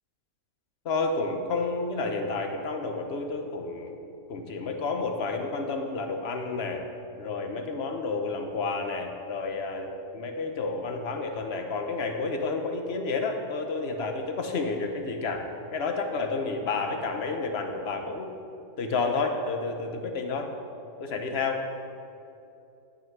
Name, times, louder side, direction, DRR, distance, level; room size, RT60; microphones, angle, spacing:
voice 1, 0.8-3.9 4.3-6.8 7.2-9.9 10.1-15.4 15.7-18.3 18.8-20.5 21.0-21.6, left 3 dB, 45° left, 4 dB, 1.1 m, -30 dB
11.0 x 9.4 x 4.6 m, 2.8 s
omnidirectional pair, 1.7 m